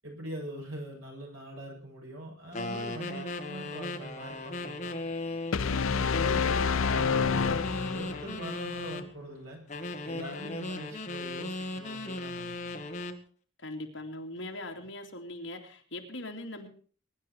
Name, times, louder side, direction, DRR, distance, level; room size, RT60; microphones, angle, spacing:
voice 1, 0.0-5.0 5.5-9.6 10.0-12.9, right 1 dB, 85° right, 0 dB, 7.9 m, -43 dB
sound 1, 2.5-5.6 6.1-9.1 9.7-13.2, left 2 dB, 35° left, 2.0 m, -37 dB
sound 2, 5.5-8.4, left 5 dB, 90° left, 0.7 m, -28 dB
voice 2, 5.6-6.3 10.4-10.6 13.6-16.7, left 1 dB, 65° left, 2 dB, 2.8 m, -41 dB
23.0 x 11.0 x 4.6 m, 0.43 s
head